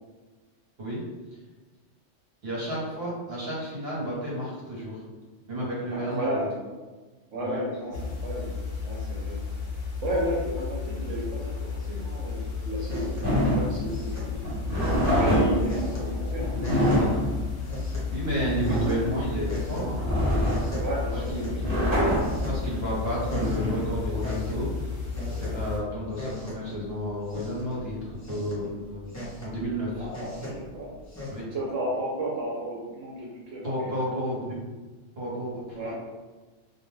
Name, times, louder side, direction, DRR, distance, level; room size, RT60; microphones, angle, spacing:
voice 1, 2.4-5.0 5.5-6.5 7.4-7.6 16.0-16.1 16.6-17.3 18.1-20.0 21.1-21.7 22.4-24.7 25.3-29.1 29.4-30.1 31.3-31.5 33.6-34.6 35.2-35.9, equal, 55° right, -5 dB, 1.1 m, -32 dB
voice 2, 5.9-6.5 7.3-9.4 10.0-14.4 15.2-16.8 20.8-21.5 30.0-30.9 31.4-33.9 35.7-35.9, right 1 dB, 80° right, -5 dB, 1.0 m, -33 dB
sound 1, 7.9-25.8, left 5 dB, 55° left, 1.0 m, -33 dB
sound 2, 12.3-31.4, equal, 20° left, 0.5 m, -41 dB
sound 3, 13.2-24.6, equal, 20° right, 1.2 m, -26 dB
2.4 x 2.2 x 3.1 m, 1.3 s
omnidirectional pair, 1.3 m